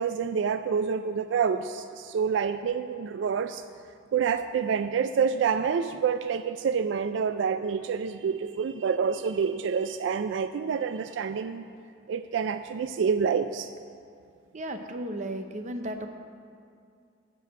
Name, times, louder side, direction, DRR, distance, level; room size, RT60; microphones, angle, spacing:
voice 1, 0.0-3.6 4.1-11.6 12.1-13.7, right 6 dB, 75° right, 10 dB, 0.3 m, -27 dB
voice 2, 14.5-16.1, right 1 dB, 40° right, 6 dB, 0.7 m, -34 dB
11.5 x 4.9 x 7.7 m, 2.3 s
head